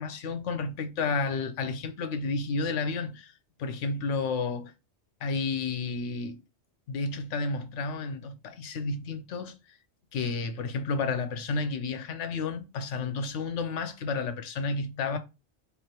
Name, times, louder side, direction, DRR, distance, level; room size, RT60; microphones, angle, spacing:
voice 1, 0.0-3.3 3.6-4.7 5.2-6.4 6.9-9.8 10.1-15.2, left 4 dB, 75° left, 1.1 m, -31 dB
3.6 x 3.3 x 4.4 m
omnidirectional pair, 1.3 m